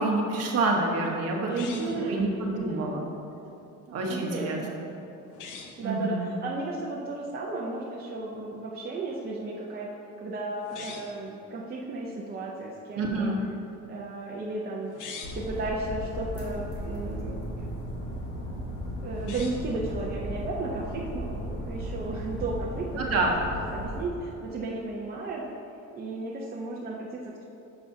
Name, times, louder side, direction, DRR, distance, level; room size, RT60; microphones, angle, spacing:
voice 1, 0.0-3.0 3.9-4.6 5.8-6.3 13.0-13.4 23.0-23.3, right 2 dB, 45° right, -1 dB, 1.2 m, -28 dB
voice 2, 1.4-2.3 2.5-3.0 4.1-4.7 5.8-9.9 10.2-13.3 13.9-14.9 15.3-17.6 19.0-22.9 23.2-23.3 23.7-25.5 25.9-27.4, right 2 dB, 30° right, -4 dB, 0.6 m, -34 dB
sound 1, 1.5-2.1 5.3-5.8 10.6-11.2 14.8-15.5 19.1-19.8, left 5 dB, 65° left, 0.9 m, -42 dB
sound 2, 15.2-24.1, equal, 40° left, 1.8 m, -36 dB
11.5 x 7.0 x 2.8 m, 2.9 s
cardioid pair, 180°, 33 cm